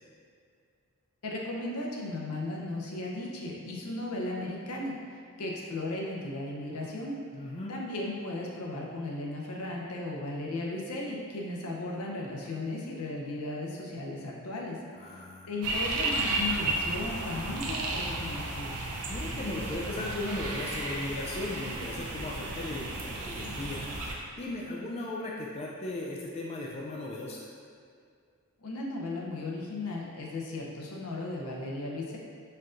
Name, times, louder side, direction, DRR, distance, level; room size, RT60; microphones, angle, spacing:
voice 1, 1.2-4.9 5.4-7.2 7.7-14.8 15.5-18.7 28.6-32.2, left 2 dB, 80° left, -2 dB, 0.7 m, -36 dB
voice 2, 7.3-7.7 14.9-15.7 19.1-23.9 24.4-27.5, left 2 dB, 30° left, -3 dB, 0.3 m, -37 dB
sound 1, 15.6-24.1, right 2 dB, 85° right, 0.6 m, -33 dB
4.4 x 3.7 x 2.5 m, 2.2 s
head